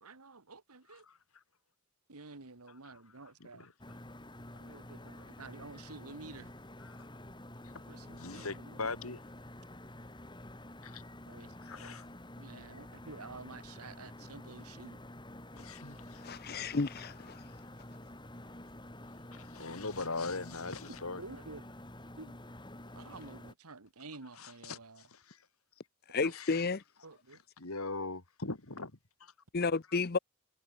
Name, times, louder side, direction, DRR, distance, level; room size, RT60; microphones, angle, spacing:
voice 1, 0.0-1.1 2.1-3.7 4.6-6.5 7.9-9.2 11.2-11.6 12.4-15.0 20.9-21.7 22.2-22.4 23.0-25.0 26.2-26.6 27.0-27.4, right 3 dB, 85° right, 1.8 m, -50 dB
sound 1, 3.8-23.5, left 1 dB, 20° left, 3.3 m, -49 dB
voice 2, 7.6-9.2 10.8-11.0 11.6-12.0 15.6-16.2 19.3-21.2 24.4-25.4 26.3-26.6 27.6-28.9 29.2-29.3, left 3 dB, 75° left, 2.7 m, -41 dB
voice 3, 16.2-17.4 26.1-26.8 29.5-30.2, left 4 dB, 45° left, 0.7 m, -32 dB
head